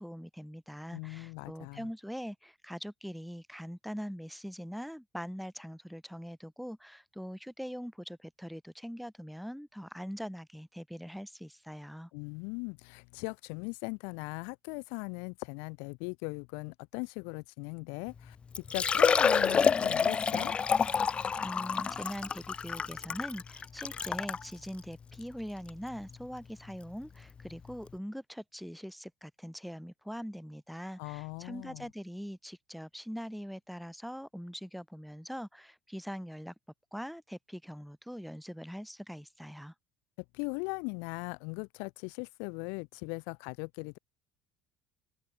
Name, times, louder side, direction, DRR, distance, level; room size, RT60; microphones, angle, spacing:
voice 1, 0.0-12.1 21.4-36.5 36.9-39.7, equal, ahead, 4.5 m, -42 dB
voice 2, 0.9-1.9 12.1-18.4 18.7-20.6 31.0-31.9 40.3-44.0, left 38 dB, 85° left, 2.3 m, -39 dB
Liquid, 18.1-18.2 18.5-24.4 25.1-25.2 25.7-25.8 27.4-27.5 27.7-27.8, left 6 dB, 25° left, 1.2 m, -28 dB
cardioid pair, 130°, 4 cm